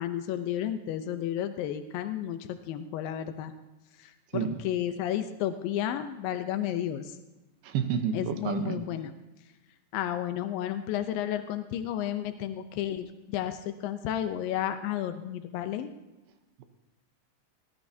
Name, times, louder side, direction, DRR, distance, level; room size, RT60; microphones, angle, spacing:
voice 1, 0.0-3.5 4.0-7.2 8.1-9.2 9.9-15.9, left 11 dB, 90° left, 9 dB, 2.0 m, -32 dB
voice 2, 7.6-8.8, right 7 dB, 75° right, 7 dB, 2.6 m, -29 dB
21.5 x 17.5 x 2.7 m, 1.1 s
omnidirectional pair, 5.0 m